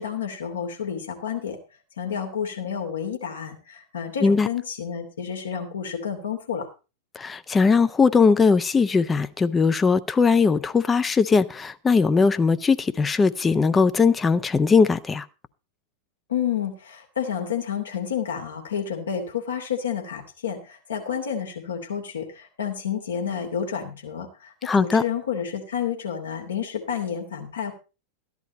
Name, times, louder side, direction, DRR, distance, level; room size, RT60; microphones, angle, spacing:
voice 1, 0.0-1.6 2.0-6.7 16.3-27.7, left 8 dB, 70° left, 2.8 m, -30 dB
voice 2, 7.2-15.2 24.7-25.0, left 5 dB, 15° left, 0.7 m, -20 dB
14.0 x 10.5 x 4.2 m
figure-of-eight pair, 90°, 0 cm